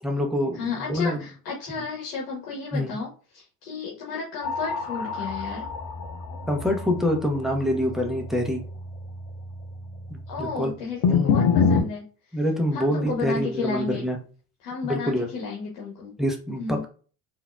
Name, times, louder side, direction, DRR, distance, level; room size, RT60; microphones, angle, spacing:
voice 1, 0.0-1.2 2.7-3.0 6.5-8.6 10.1-10.7 11.0-11.5 12.3-14.2 14.8-15.3 16.2-16.9, left 1 dB, ahead, 1 dB, 0.9 m, -26 dB
voice 2, 0.5-5.7 10.3-12.0 12.3-12.4 12.7-14.0 14.6-16.1 16.6-16.9, left 4 dB, 75° left, -2 dB, 1.1 m, -32 dB
sound 1, 4.4-10.6 11.0-11.8, left 5 dB, 55° left, 0.9 m, -27 dB
3.8 x 2.7 x 2.3 m, 0.39 s
hypercardioid pair, 80°, 47 cm